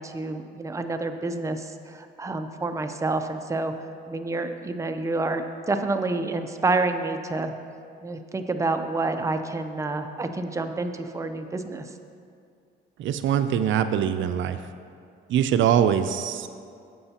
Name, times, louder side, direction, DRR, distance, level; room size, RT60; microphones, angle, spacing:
voice 1, 0.0-3.7 4.1-7.5 8.0-11.9, right 3 dB, 15° right, 6 dB, 0.6 m, -28 dB
voice 2, 13.0-14.6 15.3-16.5, right 9 dB, 75° right, 10 dB, 0.4 m, -23 dB
12.5 x 7.9 x 2.9 m, 2.4 s
cardioid pair, 90°, 20 cm